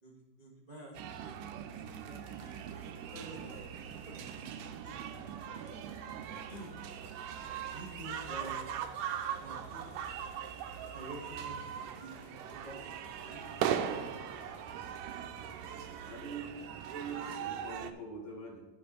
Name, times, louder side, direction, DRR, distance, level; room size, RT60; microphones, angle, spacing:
voice 1, 0.0-2.5 3.1-5.0 6.3-6.7 7.6-8.7 9.4-10.0 10.9-14.4, right 1 dB, 25° right, -5 dB, 0.8 m, -50 dB
sound 1, 0.9-17.9, right 9 dB, 90° right, 2.2 m, -40 dB
sound 2, 1.7-16.7, left 3 dB, 85° left, 2.4 m, -58 dB
voice 2, 15.7-16.6 16.9-18.6, right 3 dB, 50° left, -1 dB, 2.3 m, -44 dB
12.0 x 5.4 x 3.9 m, 1.3 s
omnidirectional pair, 3.7 m